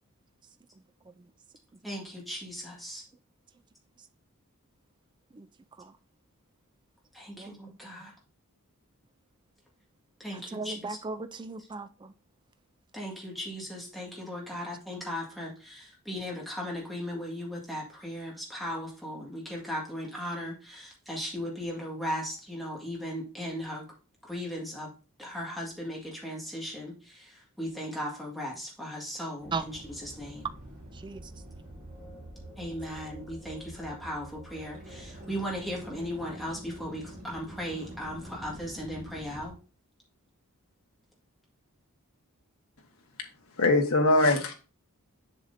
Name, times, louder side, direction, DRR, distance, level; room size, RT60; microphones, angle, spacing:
voice 1, 1.8-3.0 7.1-8.1 10.2-11.0 12.9-23.8 24.2-24.9 25.2-27.3 27.6-30.5 32.6-39.5, equal, ahead, 1.8 m, -37 dB
voice 2, 7.4-7.8 10.3-12.1 29.5-29.7 30.9-31.2, right 4 dB, 20° right, 0.3 m, -37 dB
sound 1, 29.4-39.5, right 1 dB, 45° right, 3.6 m, -46 dB
voice 3, 43.6-44.6, left 2 dB, 70° left, 1.4 m, -22 dB
7.3 x 6.4 x 2.7 m
head